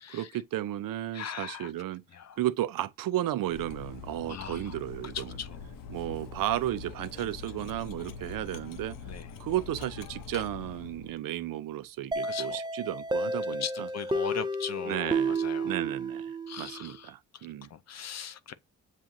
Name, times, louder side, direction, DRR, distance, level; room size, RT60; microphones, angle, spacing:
voice 1, 0.1-2.0 2.4-5.4 5.9-8.9 9.4-13.9 14.2-14.3 14.8-15.4 15.6-17.7, right 13 dB, 85° right, 0.6 m, -33 dB
voice 2, 1.1-1.7 2.2-2.3 4.3-4.7 5.1-5.6 9.0-9.2 12.2-12.6 13.6-15.7 16.5-17.1 17.7-18.5, left 8 dB, 55° left, 0.6 m, -39 dB
Cutlery silverware, 3.4-11.2, left 5 dB, 80° left, 0.8 m, -43 dB
sound 1, 12.1-16.8, right 2 dB, 15° right, 0.3 m, -31 dB
7.3 x 2.5 x 2.6 m
cardioid pair, 90°, 33 cm